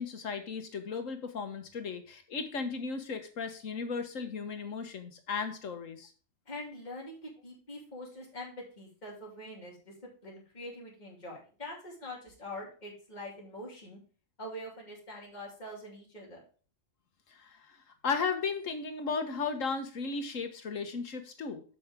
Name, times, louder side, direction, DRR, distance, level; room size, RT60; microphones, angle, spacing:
voice 1, 0.0-6.1 17.3-21.6, left 5 dB, 80° left, 7 dB, 1.6 m, -35 dB
voice 2, 6.5-9.9 10.2-14.0 14.4-16.4, left 1 dB, 35° left, -3 dB, 2.8 m, -44 dB
7.7 x 6.4 x 3.6 m, 0.39 s
omnidirectional pair, 1.3 m